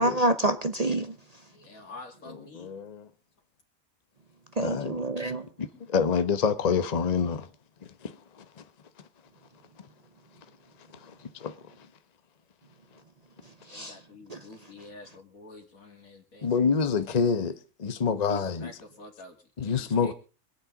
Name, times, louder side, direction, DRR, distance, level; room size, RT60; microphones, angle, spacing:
voice 1, 0.0-1.4 4.6-5.5 13.4-14.0 14.3-14.4 18.3-18.4, right 1 dB, 35° right, 0.8 m, -28 dB
voice 2, 1.5-2.8 4.7-4.9 5.7-6.1 13.7-16.5 18.1-20.1, left 2 dB, 80° left, 3.0 m, -49 dB
voice 3, 2.6-3.1 4.6-4.9 5.6-7.5 8.0-8.4 11.0-11.6 16.4-18.7 19.6-20.1, left 6 dB, 35° left, 1.0 m, -27 dB
25.5 x 8.9 x 3.6 m
omnidirectional pair, 1.4 m